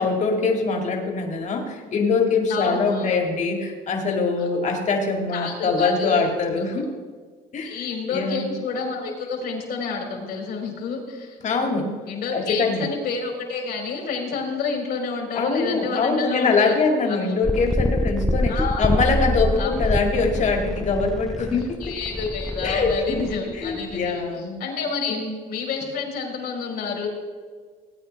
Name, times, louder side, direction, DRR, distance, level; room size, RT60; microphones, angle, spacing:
voice 1, 0.0-6.9 7.5-7.8 8.1-8.5 10.2-10.3 11.4-11.9 12.3-12.9 15.3-21.9 22.6-23.2 23.6-24.6 25.1-25.3, left 4 dB, 45° left, 2 dB, 2.3 m, -23 dB
voice 2, 2.5-3.2 4.4-4.5 5.3-6.2 7.6-11.4 12.1-16.8 17.1-17.3 18.5-18.9 19.6-19.7 21.8-25.2 25.5-27.1, left 4 dB, 70° left, 0 dB, 3.9 m, -29 dB
sound 1, 17.4-24.1, equal, ahead, 0.3 m, -26 dB
18.0 x 9.3 x 3.4 m, 1.5 s
cardioid pair, 110°, 17 cm